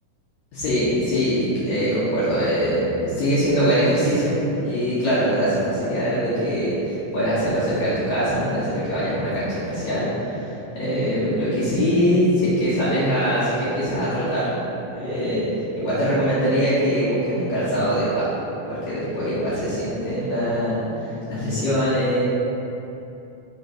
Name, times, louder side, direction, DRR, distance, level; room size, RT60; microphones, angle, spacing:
voice 1, 0.5-14.6 14.9-15.5 15.8-18.3 18.6-22.2, equal, 60° left, -12 dB, 2.7 m, -22 dB
5.6 x 4.0 x 5.9 m, 2.8 s
omnidirectional pair, 3.8 m